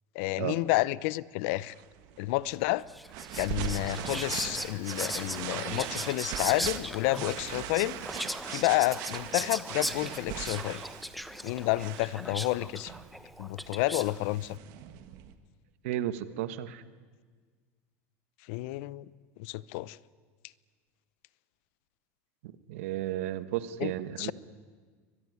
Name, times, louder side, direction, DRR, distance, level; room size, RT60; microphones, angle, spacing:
voice 1, 0.1-1.7 2.2-2.9 3.4-8.0 8.5-10.8 11.4-12.9 13.4-14.6 18.5-19.1 19.4-20.0 23.8-23.9 24.2-24.3, left 19 dB, 70° left, 21 dB, 0.7 m, -30 dB
sound 1, 1.7-15.3, right 11 dB, 65° right, 1.8 m, -40 dB
Whispering, 2.9-14.2, equal, ahead, 1.2 m, -38 dB
voice 2, 15.8-16.8 22.4-24.3, right 13 dB, 85° right, 13 dB, 1.3 m, -33 dB
23.5 x 20.5 x 9.7 m, 1.6 s
supercardioid pair, 125°, 7 cm